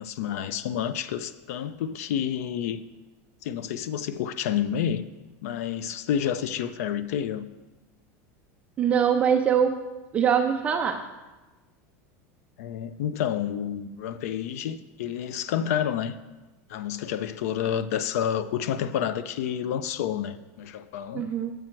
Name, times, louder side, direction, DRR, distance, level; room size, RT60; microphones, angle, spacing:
voice 1, 0.0-2.8 3.4-5.1 5.4-7.5 12.6-16.2 16.7-21.3, left 9 dB, 75° left, 0.4 m, -29 dB
voice 2, 8.8-9.7 10.1-11.0 21.1-21.5, right 8 dB, 15° right, 0.3 m, -23 dB
7.7 x 7.5 x 4.5 m
supercardioid pair, 180°, 8 cm